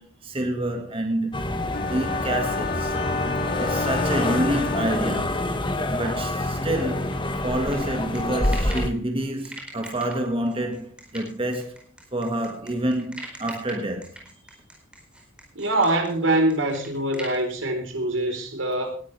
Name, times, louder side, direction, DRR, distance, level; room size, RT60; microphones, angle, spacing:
voice 1, 0.0-3.0 3.6-5.5 5.9-7.1 7.4-11.8 12.1-14.1, right 1 dB, 30° right, 1.8 m, -28 dB
sound 1, 1.3-8.9, left 1 dB, 25° left, 1.5 m, -26 dB
sound 2, 1.7-5.6, left 4 dB, 50° left, 0.9 m, -32 dB
sound 3, 6.7-9.0 9.4-17.4, right 1 dB, 5° right, 4.5 m, -42 dB
voice 2, 15.5-19.0, right 1 dB, 85° right, 4.2 m, -24 dB
19.5 x 13.0 x 3.4 m
head